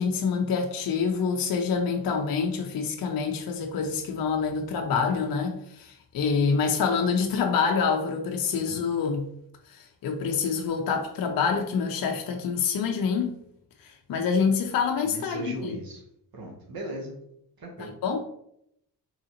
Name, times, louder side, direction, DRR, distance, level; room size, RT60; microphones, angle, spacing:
voice 1, 0.0-9.3 9.8-13.4 13.8-15.5 18.0-18.2, left 5 dB, 55° left, 3 dB, 0.5 m, -26 dB
voice 2, 15.0-16.0 16.3-17.2 17.6-18.0, right 1 dB, 55° right, 0 dB, 0.9 m, -37 dB
3.7 x 3.1 x 2.8 m, 0.74 s
wide cardioid pair, 120°, 43 cm